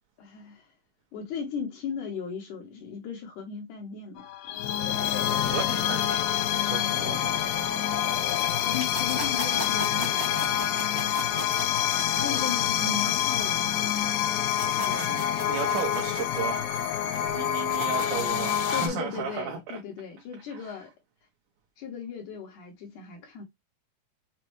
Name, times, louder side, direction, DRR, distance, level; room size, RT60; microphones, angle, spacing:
voice 1, 0.2-0.7 1.1-4.6 7.0-7.3 8.6-10.5 12.1-14.1 14.8-15.3 18.7-20.9 21.8-23.4, left 6 dB, 70° left, 2.3 m, -37 dB
sound 1, 4.2-18.9, left 10 dB, 90° left, 2.5 m, -27 dB
voice 2, 5.4-7.4 15.5-16.6 17.3-19.6, right 7 dB, 70° right, 2.2 m, -34 dB
sound 2, 8.7-14.0 14.3-18.4, right 1 dB, 35° right, 0.6 m, -39 dB
6.2 x 2.3 x 3.0 m
omnidirectional pair, 4.1 m